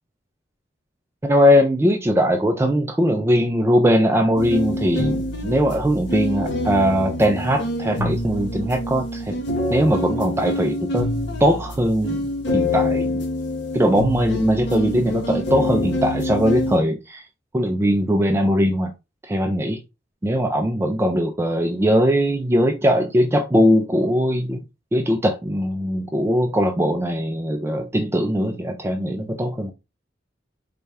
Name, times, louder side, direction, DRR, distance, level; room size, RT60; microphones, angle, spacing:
voice 1, 1.2-9.4 9.7-11.1 11.4-13.2 13.7-17.2 17.5-18.9 19.3-19.8 20.2-24.6 24.9-29.7, equal, 15° right, 0.3 m, -20 dB
sound 1, 4.4-16.8, left 1 dB, 70° left, 0.7 m, -26 dB
4.1 x 2.3 x 3.3 m
head